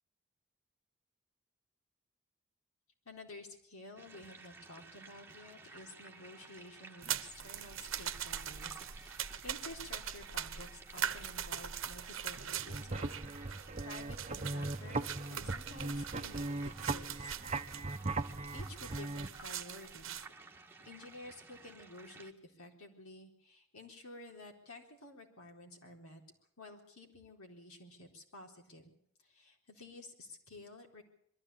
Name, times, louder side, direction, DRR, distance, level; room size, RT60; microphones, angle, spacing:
voice 1, 3.1-17.3 18.5-20.2 20.9-26.2 26.6-29.0 29.2-31.0, left 2 dB, 85° left, 2 dB, 4.1 m, -52 dB
sound 1, 4.0-22.3, right 3 dB, 10° right, 1.6 m, -55 dB
sound 2, 7.0-20.3, right 9 dB, 65° right, 1.0 m, -42 dB
sound 3, 12.5-19.3, right 2 dB, 30° right, 0.8 m, -39 dB
22.5 x 14.0 x 8.6 m, 0.70 s
head